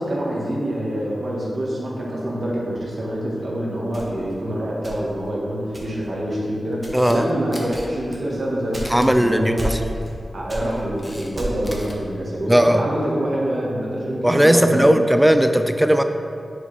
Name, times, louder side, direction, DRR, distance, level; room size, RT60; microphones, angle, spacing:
voice 1, 0.0-9.7 10.3-14.9, right 1 dB, 60° right, -5 dB, 1.4 m, -26 dB
sound 1, 3.9-5.3 5.7-6.2 6.7-7.2 7.7-9.2 9.6-10.2 10.5-11.8, right 1 dB, 35° right, 1.2 m, -32 dB
Camera, 6.7-7.2 7.5-7.9 8.8-9.1 10.4-11.3 11.5-12.0, left 1 dB, 15° left, 0.8 m, -39 dB
voice 2, 6.9-7.2 8.9-9.8 12.5-12.8 14.2-16.0, equal, 5° right, 8 dB, 0.3 m, -17 dB
6.8 x 4.8 x 3.3 m, 2.4 s
wide cardioid pair, 80°, 0 cm